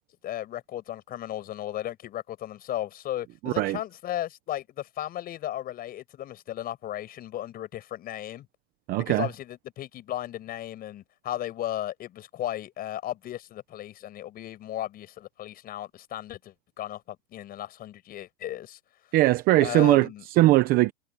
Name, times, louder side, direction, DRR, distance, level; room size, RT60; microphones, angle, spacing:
voice 1, 0.2-8.5 9.0-18.8 19.6-20.2, left 12 dB, 25° left, 7.0 m, -35 dB
voice 2, 3.4-3.8 8.9-9.3 19.1-20.1 20.4-20.9, right 17 dB, 25° right, 0.8 m, -20 dB
supercardioid pair, 150°, 35 cm